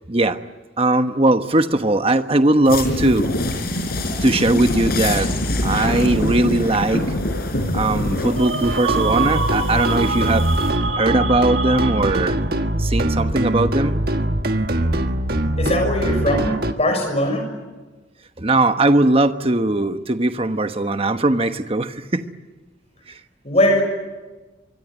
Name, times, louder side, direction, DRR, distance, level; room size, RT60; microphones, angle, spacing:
voice 1, 0.1-0.4 0.8-3.3 4.2-5.3 5.6-7.0 7.7-10.5 10.9-12.4 12.8-14.0 18.4-22.3 23.1-23.2, right 2 dB, 30° right, 9 dB, 1.1 m, -19 dB
sound 1, 2.7-10.7, left 1 dB, 50° left, 5.1 m, -25 dB
sound 2, 8.4-12.5, right 4 dB, 85° right, 2.0 m, -26 dB
sound 3, 8.6-16.7, right 1 dB, 50° right, 1.4 m, -22 dB
voice 2, 15.6-17.5 23.4-23.8, left 1 dB, 35° left, 5 dB, 6.4 m, -20 dB
24.5 x 24.5 x 9.2 m, 1.2 s
head